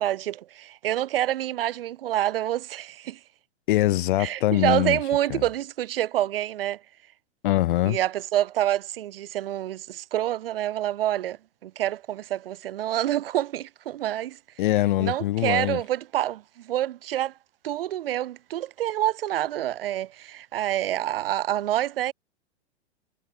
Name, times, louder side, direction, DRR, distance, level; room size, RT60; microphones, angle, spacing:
voice 1, 0.0-3.2 4.2-6.8 7.8-14.4 15.0-17.3 17.6-22.1, right 13 dB, 50° right, 5.0 m, -27 dB
voice 2, 3.7-5.0 5.3-5.4 7.4-8.0 14.6-15.8, left 16 dB, 45° left, 1.6 m, -23 dB
figure-of-eight pair, 110°, 35 cm